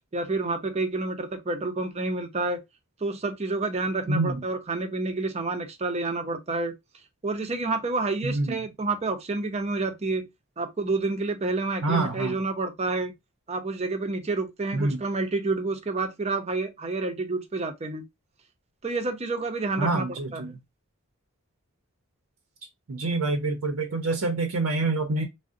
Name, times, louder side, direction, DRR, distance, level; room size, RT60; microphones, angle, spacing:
voice 1, 0.1-2.6 3.0-6.8 7.2-10.3 10.6-13.1 13.5-18.0 18.8-20.1 20.3-20.5, right 3 dB, 30° right, 0.5 m, -29 dB
voice 2, 4.1-4.4 8.2-8.6 11.8-12.4 14.7-15.0 19.8-20.6 22.9-25.2, right 2 dB, 80° right, 0.5 m, -26 dB
3.6 x 2.0 x 2.5 m
head